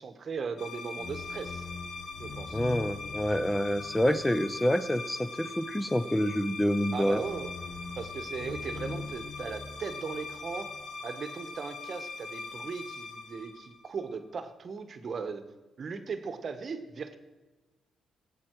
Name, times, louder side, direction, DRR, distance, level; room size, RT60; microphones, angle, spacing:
voice 1, 0.0-1.6 2.2-2.6 6.9-7.5 8.0-10.7 11.0-15.4 15.8-17.2, right 5 dB, 40° right, 9 dB, 1.1 m, -38 dB
sound 1, 0.6-14.2, left 4 dB, 55° left, 1.3 m, -40 dB
voice 2, 2.5-7.2, equal, 5° left, 13 dB, 0.6 m, -27 dB
19.0 x 8.5 x 4.6 m, 1.2 s
cardioid pair, 160°, 0 cm